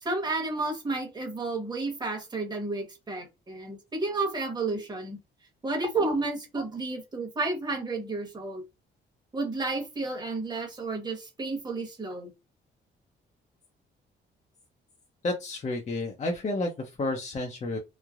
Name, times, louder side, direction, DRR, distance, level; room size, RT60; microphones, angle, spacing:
voice 1, 0.0-5.2 5.6-8.6 9.3-12.3, right 3 dB, 20° right, 1.1 m, -31 dB
voice 2, 15.2-17.8, left 2 dB, 35° left, 0.7 m, -31 dB
3.1 x 2.1 x 2.4 m
cardioid pair, 90°, 20 cm